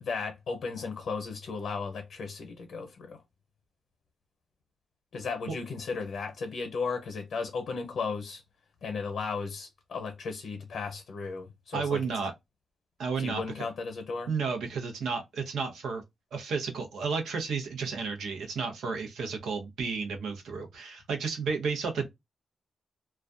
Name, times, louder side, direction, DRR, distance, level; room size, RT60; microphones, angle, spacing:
voice 1, 0.0-3.2 5.1-8.4 8.8-12.0 13.2-14.3, left 4 dB, 75° left, 0.7 m, -35 dB
voice 2, 11.7-12.3 13.0-13.4 14.3-16.0 16.3-22.1, right 5 dB, 90° right, 0.8 m, -32 dB
2.3 x 2.2 x 2.4 m
cardioid pair, 80°, 0 cm